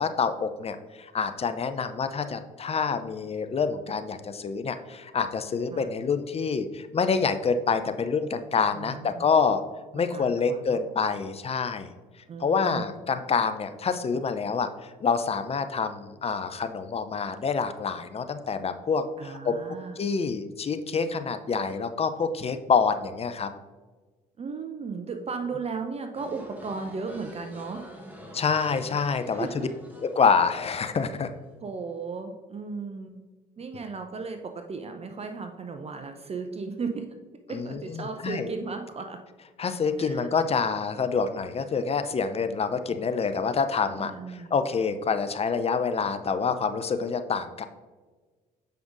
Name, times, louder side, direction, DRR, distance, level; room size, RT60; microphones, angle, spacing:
voice 1, 0.0-9.6 9.9-11.9 12.4-19.6 20.0-23.5 28.3-29.7 30.0-31.3 37.5-38.5 39.6-47.7, left 5 dB, 35° left, 9 dB, 0.5 m, -27 dB
voice 2, 8.7-9.3 9.9-10.8 12.3-12.9 19.2-20.0 24.4-27.9 29.3-29.7 31.6-33.2 33.6-37.0 37.5-39.2 40.0-40.3 42.9-43.0 44.0-44.5, right 4 dB, 35° right, 5 dB, 0.6 m, -36 dB
sound 1, 26.1-31.6, equal, 10° right, 1.6 m, -47 dB
7.7 x 5.1 x 2.5 m, 1.3 s
hypercardioid pair, 55°, 18 cm